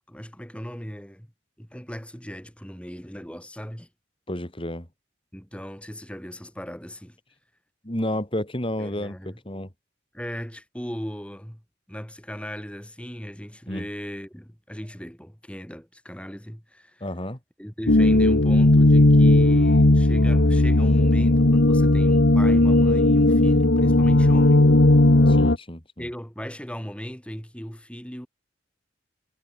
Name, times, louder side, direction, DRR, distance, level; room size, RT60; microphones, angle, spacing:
voice 1, 0.1-1.3 1.6-3.9 5.3-7.1 8.8-9.4 10.1-11.6 11.9-17.1 17.6-24.7 26.0-28.3, equal, 5° left, 6.3 m, -37 dB
voice 2, 4.3-4.9 7.8-9.7 13.7-13.9 17.0-17.4 25.3-26.1, left 1 dB, 30° left, 4.9 m, -31 dB
sound 1, 17.9-25.6, left 2 dB, 65° left, 1.4 m, -16 dB
head